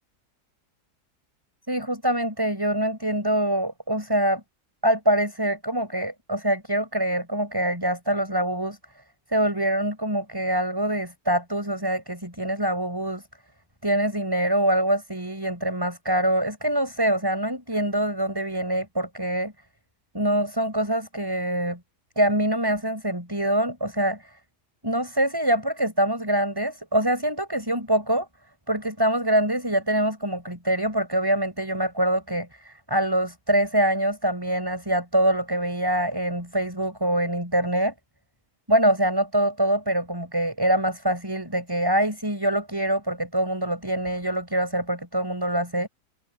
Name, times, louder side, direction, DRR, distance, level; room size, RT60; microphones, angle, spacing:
voice 1, 1.7-4.4 4.8-8.8 9.3-13.2 13.8-19.5 20.1-21.8 22.2-24.3 24.8-28.3 28.7-37.9 38.7-45.9, right 1 dB, 15° right, 7.7 m, -24 dB
omnidirectional pair, 1.8 m